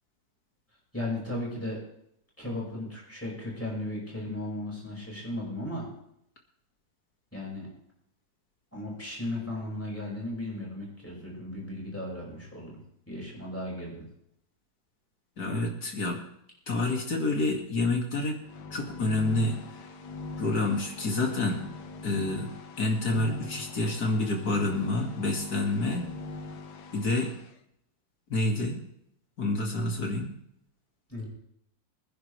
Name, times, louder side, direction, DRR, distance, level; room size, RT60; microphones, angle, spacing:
voice 1, 0.9-1.8 2.4-5.9 7.3-7.7 8.7-12.8 13.1-14.0 31.1-31.3, left 1 dB, 5° left, -4 dB, 5.9 m, -36 dB
voice 2, 15.4-16.2 16.7-18.4 18.7-19.6 20.4-21.6 22.0-22.5 22.8-26.0 26.9-27.3 28.3-28.8 29.4-30.3, left 2 dB, 50° left, 1 dB, 2.9 m, -28 dB
sound 1, 18.4-27.5, left 3 dB, 90° left, 1.9 m, -42 dB
24.5 x 10.0 x 3.4 m, 0.75 s
omnidirectional pair, 2.1 m